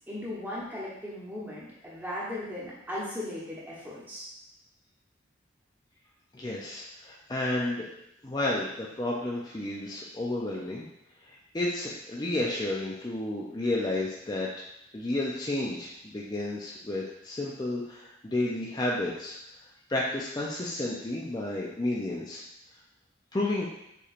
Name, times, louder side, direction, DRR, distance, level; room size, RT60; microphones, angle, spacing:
voice 1, 0.1-4.3, left 1 dB, 10° right, -8 dB, 1.1 m, -37 dB
voice 2, 6.3-7.9 8.2-10.8 11.3-14.7 14.9-19.4 19.9-22.4 23.3-23.7, left 2 dB, 20° left, -4 dB, 0.5 m, -31 dB
6.8 x 3.2 x 2.5 m, 0.81 s
head